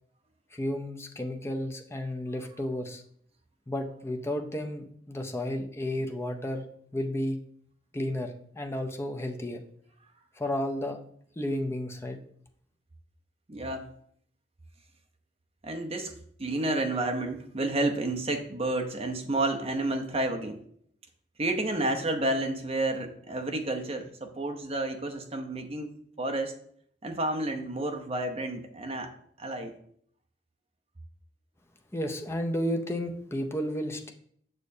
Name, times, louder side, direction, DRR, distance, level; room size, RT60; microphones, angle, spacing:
voice 1, 0.5-3.0 3.7-6.7 6.9-7.4 7.9-9.6 10.4-11.0 11.4-12.2 31.9-34.1, left 1 dB, 15° left, 4 dB, 0.6 m, -32 dB
voice 2, 13.5-13.9 15.6-16.1 16.4-20.6 21.4-25.9 26.2-26.5 27.0-29.1 29.4-29.7, right 2 dB, 35° right, 4 dB, 0.7 m, -30 dB
6.5 x 6.2 x 2.7 m, 0.65 s
head